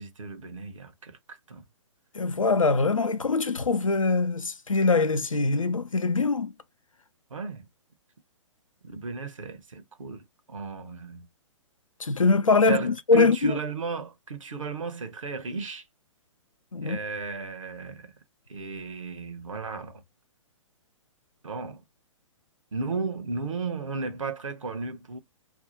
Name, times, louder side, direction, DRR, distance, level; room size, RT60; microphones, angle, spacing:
voice 1, 0.0-1.7 7.3-7.7 8.8-11.3 12.7-15.9 16.8-18.1 18.5-20.0 21.4-21.8 22.7-25.2, right 4 dB, 75° right, 0.7 m, -35 dB
voice 2, 2.1-6.5 12.0-13.6 16.7-17.0, left 3 dB, 90° left, 0.5 m, -23 dB
2.6 x 2.4 x 4.0 m
figure-of-eight pair, 125°, 17 cm